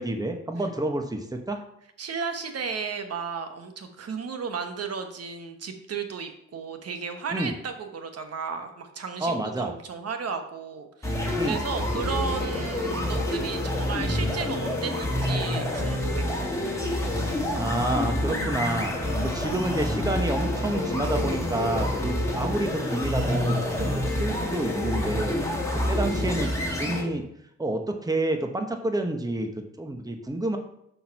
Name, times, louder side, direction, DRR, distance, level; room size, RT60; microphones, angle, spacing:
voice 1, 0.0-1.6 7.3-7.5 9.2-9.7 11.4-11.6 17.5-18.9 19.2-27.2 27.6-30.6, right 1 dB, 15° right, 5 dB, 1.1 m, -29 dB
voice 2, 2.0-16.3, right 5 dB, 55° right, 7 dB, 1.1 m, -34 dB
sound 1, 11.0-27.0, left 1 dB, 10° left, 2.0 m, -27 dB
6.1 x 4.5 x 5.8 m, 0.76 s
cardioid pair, 75°, 29 cm